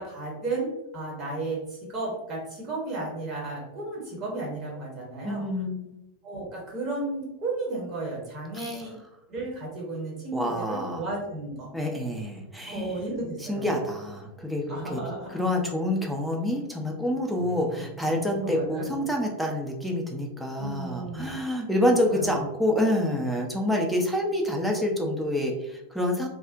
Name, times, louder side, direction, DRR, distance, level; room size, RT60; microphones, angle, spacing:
voice 1, 0.0-5.5 6.2-8.9 9.3-11.7 12.7-13.7 14.7-15.6 17.5-17.9 18.4-19.1 20.6-21.4 21.9-22.3, right 2 dB, 30° right, -4 dB, 0.8 m, -34 dB
voice 2, 5.2-5.9 8.5-8.8 10.3-11.0 11.7-12.9 13.5-15.0 15.3-26.3, left 1 dB, 5° right, 0 dB, 0.4 m, -27 dB
Keyboard (musical), 17.3-20.5, right 3 dB, 85° left, 0.6 m, -54 dB
2.4 x 2.0 x 2.5 m, 0.89 s
figure-of-eight pair, 90°, 0 cm